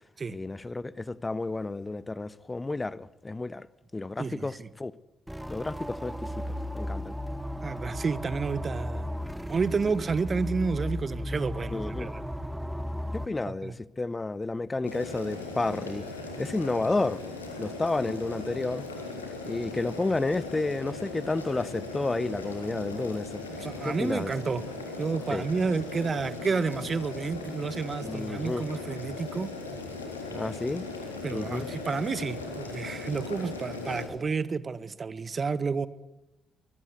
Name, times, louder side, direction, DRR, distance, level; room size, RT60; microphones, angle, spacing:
voice 1, 0.3-3.7 3.9-4.9 5.5-7.2 11.7-12.1 13.1-16.1 16.4-17.2 17.6-18.9 19.4-23.4 23.8-24.3 25.3-25.4 28.0-28.6 30.3-30.9 31.3-31.7, left 2 dB, 25° left, 1.2 m, -31 dB
voice 2, 4.2-4.7 7.6-9.1 9.5-12.2 13.5-13.7 23.5-24.6 25.0-29.5 31.2-35.9, right 4 dB, 40° right, 1.6 m, -30 dB
sound 1, 5.3-13.3, equal, 5° right, 1.6 m, -35 dB
Boiling, 14.9-34.1, left 3 dB, 90° left, 3.6 m, -38 dB
24.5 x 21.5 x 8.3 m
figure-of-eight pair, 40°, 0 cm